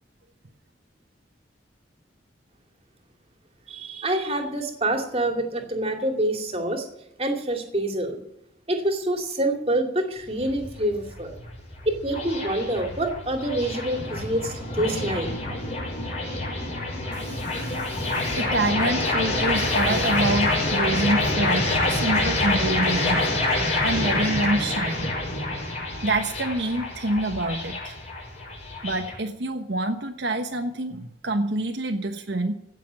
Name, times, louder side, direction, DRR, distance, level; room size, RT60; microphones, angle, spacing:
voice 1, 3.7-6.9 7.2-8.2 8.7-11.3 11.9-15.3, right 1 dB, 30° right, 4 dB, 2.5 m, -26 dB
sound 1, 10.2-29.1, left 2 dB, 35° left, 6.0 m, -26 dB
voice 2, 17.1-23.3 23.8-25.2 26.0-28.0 28.8-32.5, right 2 dB, 70° right, 4 dB, 1.2 m, -27 dB
16.5 x 6.9 x 9.4 m, 0.82 s
head